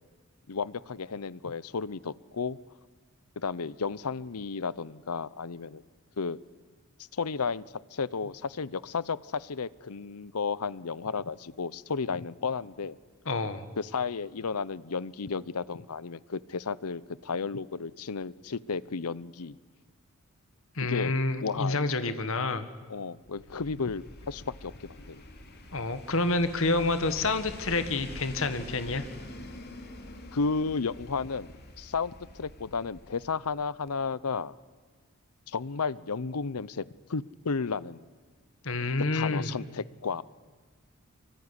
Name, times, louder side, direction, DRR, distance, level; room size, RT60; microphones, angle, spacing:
voice 1, 0.5-2.6 3.4-5.8 6.2-6.4 7.1-7.6 7.9-13.0 13.8-19.6 20.8-21.8 22.9-25.2 30.3-31.5 31.8-34.5 35.5-36.8 37.1-38.0 39.1-40.2, left 5 dB, 85° left, 20 dB, 0.8 m, -33 dB
voice 2, 13.3-13.6 20.8-22.7 25.7-29.0 38.6-39.5, left 3 dB, 60° left, 11 dB, 1.7 m, -28 dB
sound 1, 23.2-33.6 33.9-34.0, left 1 dB, 45° left, 3.5 m, -46 dB
24.5 x 24.0 x 9.9 m, 1.4 s
head